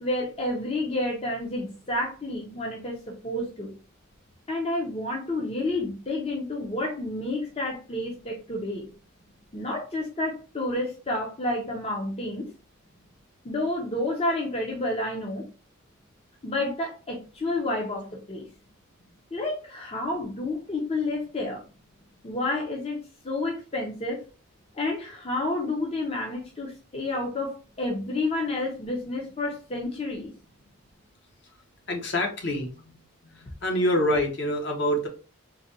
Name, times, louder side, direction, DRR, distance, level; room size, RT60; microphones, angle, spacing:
voice 1, 0.0-3.0 3.2-3.7 4.5-8.9 9.5-12.5 13.4-15.4 16.4-18.4 19.3-21.6 22.2-23.0 23.2-24.2 24.7-30.3, left 2 dB, 30° left, -1 dB, 0.6 m, -30 dB
voice 2, 31.9-33.0 33.2-35.1, left 1 dB, 55° left, 2 dB, 0.9 m, -26 dB
3.8 x 2.2 x 2.8 m, 0.35 s
head